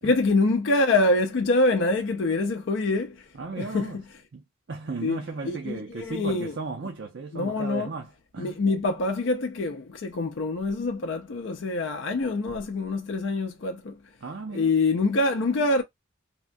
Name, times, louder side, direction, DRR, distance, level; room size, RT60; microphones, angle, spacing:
voice 1, 0.0-3.2 3.6-4.0 5.0-5.2 5.4-6.5 7.3-7.9 8.4-14.0 14.5-15.8, left 2 dB, 65° left, 0.4 m, -25 dB
voice 2, 3.3-4.0 4.3-4.4 4.7-8.6 14.2-14.7, right 3 dB, 60° right, 0.5 m, -35 dB
3.5 x 2.2 x 2.5 m
head